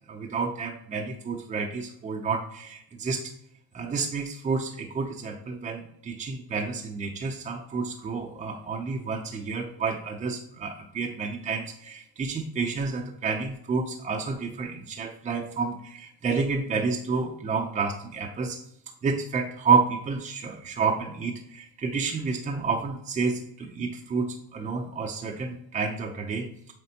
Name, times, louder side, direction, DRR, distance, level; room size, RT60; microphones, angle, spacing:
voice 1, 0.1-3.3 3.7-18.6 19.0-26.5, right 5 dB, 20° right, 1 dB, 0.6 m, -29 dB
7.8 x 4.3 x 2.9 m, 0.74 s
cardioid pair, 130°, 33 cm